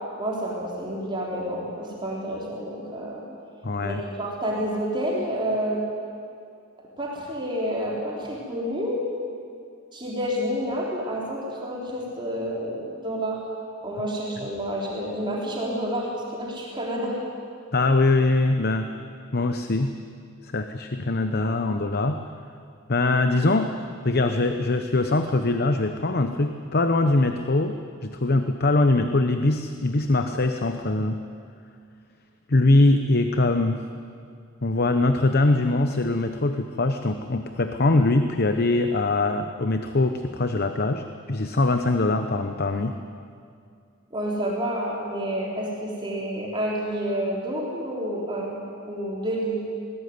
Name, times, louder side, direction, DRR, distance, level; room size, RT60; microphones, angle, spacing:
voice 1, 0.2-3.2 3.8-5.8 7.0-9.0 9.9-13.4 13.8-17.2 44.1-48.6 48.9-49.6, equal, 25° right, -3 dB, 3.8 m, -29 dB
voice 2, 3.6-4.0 17.7-18.9 19.3-19.9 20.4-22.2 22.9-31.2 32.5-33.8 34.6-43.0, left 2 dB, 50° left, 7 dB, 0.9 m, -22 dB
20.5 x 18.0 x 9.6 m, 2.3 s
head